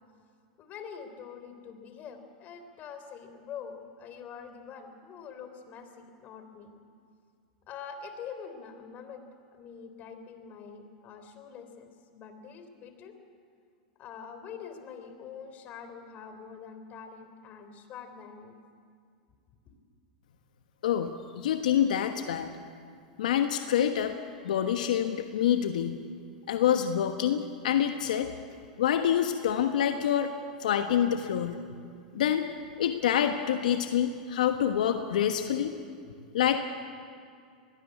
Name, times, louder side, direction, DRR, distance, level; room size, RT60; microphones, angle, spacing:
voice 1, 0.6-6.7 7.7-9.2 9.5-13.2 14.0-18.6, left 6 dB, 40° left, 7 dB, 3.4 m, -45 dB
voice 2, 20.8-22.5 23.2-24.1 24.4-26.0 26.5-28.3 28.8-30.3 30.6-31.6 32.1-32.5 32.8-35.8 36.3-36.6, left 9 dB, 75° left, 7 dB, 1.3 m, -26 dB
21.0 x 19.0 x 8.4 m, 2.3 s
hypercardioid pair, 105°, 4 cm